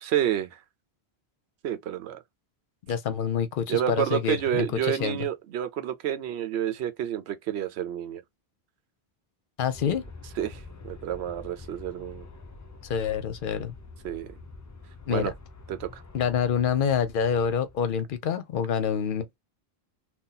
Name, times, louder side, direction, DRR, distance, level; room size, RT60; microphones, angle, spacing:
voice 1, 0.0-0.6 1.6-2.2 3.7-8.2 9.8-9.9 10.4-12.3 14.0-14.3 15.1-15.3 15.7-16.0, right 10 dB, 85° right, 0.9 m, -29 dB
voice 2, 2.9-5.3 9.6-10.0 12.8-13.7 15.1-15.3 16.1-19.4, left 7 dB, 60° left, 0.8 m, -27 dB
Aircraft, 9.7-18.1, left 3 dB, 30° left, 0.3 m, -46 dB
2.7 x 2.3 x 3.8 m
omnidirectional pair, 1.1 m